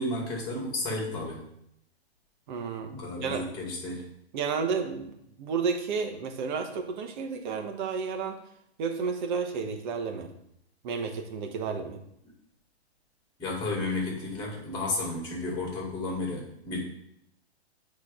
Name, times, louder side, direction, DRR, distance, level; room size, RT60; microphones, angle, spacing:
voice 1, 0.0-1.4 2.9-4.0 13.4-16.8, left 2 dB, 10° left, -2 dB, 2.0 m, -32 dB
voice 2, 2.5-3.4 4.3-5.1 5.4-8.4 8.8-10.3 10.8-12.0, right 5 dB, 45° right, 4 dB, 1.1 m, -31 dB
8.1 x 3.2 x 4.9 m, 0.75 s
hypercardioid pair, 130°, 32 cm